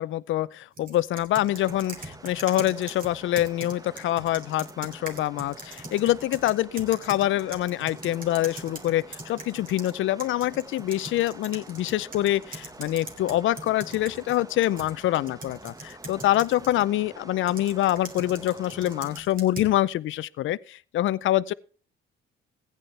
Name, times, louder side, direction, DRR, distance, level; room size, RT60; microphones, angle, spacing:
voice 1, 0.0-21.5, left 14 dB, 70° left, 0.5 m, -25 dB
sound 1, 0.8-9.9 10.2-16.9 17.5-19.8, right 2 dB, 40° right, 3.0 m, -42 dB
sound 2, 1.5-19.2, right 2 dB, 15° right, 1.1 m, -47 dB
15.5 x 9.5 x 3.3 m
cardioid pair, 80°, 21 cm